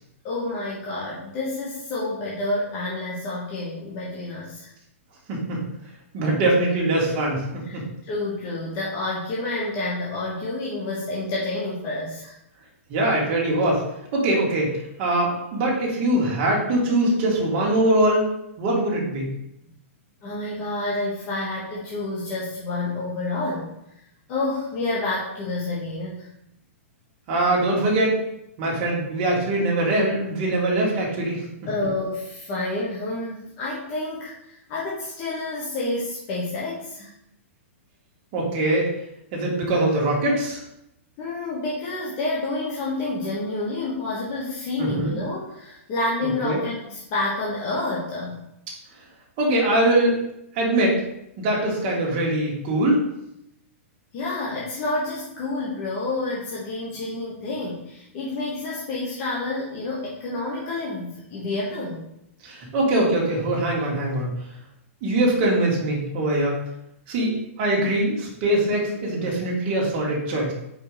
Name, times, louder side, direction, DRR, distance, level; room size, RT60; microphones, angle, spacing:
voice 1, 0.2-4.7 7.6-7.8 8.1-12.3 20.2-23.7 24.3-26.3 31.7-37.1 41.2-48.4 54.1-62.0, left 2 dB, 30° left, -6 dB, 1.2 m, -29 dB
voice 2, 5.3-5.6 6.1-7.9 12.9-13.8 14.1-14.7 15.0-18.2 18.6-19.3 27.3-28.2 28.6-31.4 38.3-38.9 39.3-40.6 44.8-45.1 46.4-46.6 49.4-50.1 50.5-51.0 51.4-53.0 62.4-64.3 65.0-66.6 67.1-70.5, right 1 dB, 30° right, -3 dB, 1.9 m, -22 dB
5.0 x 4.6 x 5.0 m, 0.81 s
hypercardioid pair, 165°, 8 cm